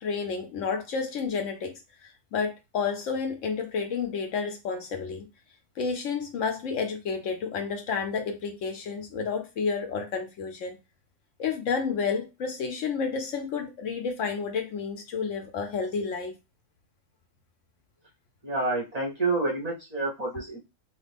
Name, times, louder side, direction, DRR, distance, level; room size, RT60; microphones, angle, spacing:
voice 1, 0.0-5.3 5.8-10.8 11.4-16.3, left 5 dB, 70° left, 5 dB, 0.9 m, -30 dB
voice 2, 18.4-20.6, right 3 dB, 35° right, -4 dB, 0.7 m, -28 dB
2.9 x 2.5 x 3.3 m, 0.25 s
omnidirectional pair, 1.5 m